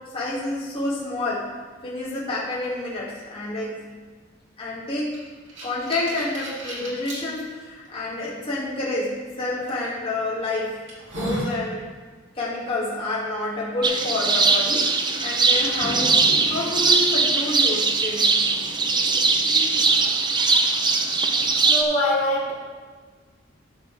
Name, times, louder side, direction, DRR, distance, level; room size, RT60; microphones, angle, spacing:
voice 1, 0.1-1.4 1.8-3.9 4.6-5.1 5.6-10.8 11.1-11.8 12.3-14.9 15.2-16.2 16.5-18.4, left 2 dB, 30° left, -8 dB, 2.4 m, -28 dB
sound 1, 5.1-7.2 7.9-8.0 9.7-9.9 10.4-10.5 10.9-11.5, equal, 70° right, 2.6 m, -32 dB
sound 2, 13.8-21.8, right 4 dB, 25° right, 0.6 m, -20 dB
voice 2, 21.5-22.5, left 1 dB, 70° left, -6 dB, 2.7 m, -23 dB
13.5 x 6.2 x 3.4 m, 1.5 s
head